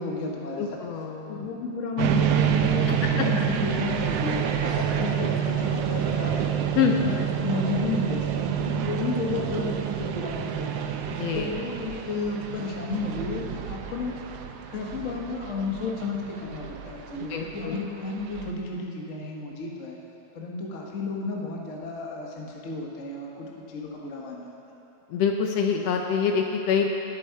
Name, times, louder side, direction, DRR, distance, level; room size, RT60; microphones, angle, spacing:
voice 1, 0.0-0.8 1.3-6.5 7.0-10.9 11.3-14.2 14.7-20.0 20.3-24.5, left 3 dB, 50° left, -1 dB, 0.9 m, -32 dB
voice 2, 0.6-1.5 2.9-3.3 6.7-7.0 11.1-11.5 17.3-17.8 25.1-26.9, left 7 dB, 75° left, 2 dB, 1.6 m, -26 dB
sound 1, 2.0-18.5, right 9 dB, 75° right, 1.5 m, -28 dB
19.5 x 7.5 x 4.6 m, 2.9 s
omnidirectional pair, 3.4 m